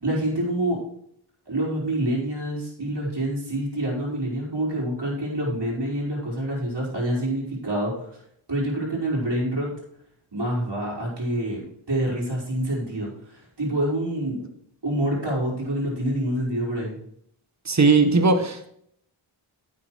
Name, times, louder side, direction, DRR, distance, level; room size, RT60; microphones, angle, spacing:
voice 1, 0.0-0.8 1.5-8.1 8.5-9.7 10.3-11.6 11.9-14.5 14.8-17.0, right 1 dB, 50° right, -4 dB, 4.8 m, -27 dB
voice 2, 17.6-18.7, right 3 dB, 35° right, 8 dB, 1.4 m, -18 dB
10.0 x 7.8 x 4.7 m, 0.70 s
wide cardioid pair, 75°, 50 cm